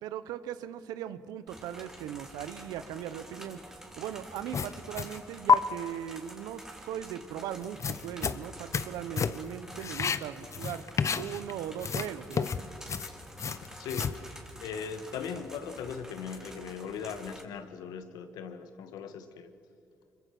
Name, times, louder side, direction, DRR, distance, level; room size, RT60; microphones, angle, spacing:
voice 1, 0.0-3.6 4.0-10.9 11.2-12.7, right 10 dB, 90° right, 14 dB, 1.0 m, -39 dB
sound 1, 1.5-17.4, right 1 dB, 10° right, 3.5 m, -48 dB
sound 2, 4.5-5.2 5.5-5.6 7.6-8.9 9.2-9.5 9.8-11.5 11.8-14.2, left 6 dB, 50° left, 1.0 m, -29 dB
voice 2, 13.5-19.5, left 6 dB, 85° left, 9 dB, 1.6 m, -39 dB
25.0 x 23.0 x 6.0 m, 2.6 s
supercardioid pair, 60°, 7 cm